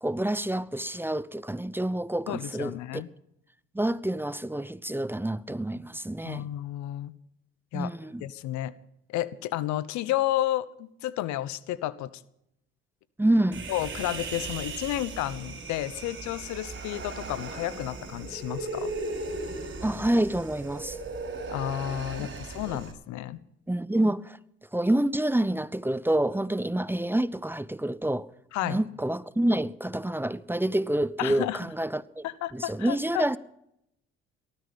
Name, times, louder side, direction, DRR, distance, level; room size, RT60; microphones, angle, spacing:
voice 1, 0.0-3.0 3.7-6.5 7.7-8.3 13.2-13.7 19.8-21.0 22.2-22.3 22.7-22.8 23.7-24.4 24.7-28.3 28.6-32.2 32.5-33.4, right 1 dB, 5° right, 0.8 m, -28 dB
voice 2, 2.3-3.1 6.2-7.1 7.7-7.9 8.2-8.7 9.1-12.1 13.7-18.9 21.5-23.4 28.5-28.8 31.2-31.6 32.2-33.3, left 14 dB, 75° left, 1.0 m, -31 dB
Human voice, 13.5-22.9, right 3 dB, 40° right, 5.6 m, -37 dB
19.0 x 13.5 x 5.3 m
supercardioid pair, 65°, 29 cm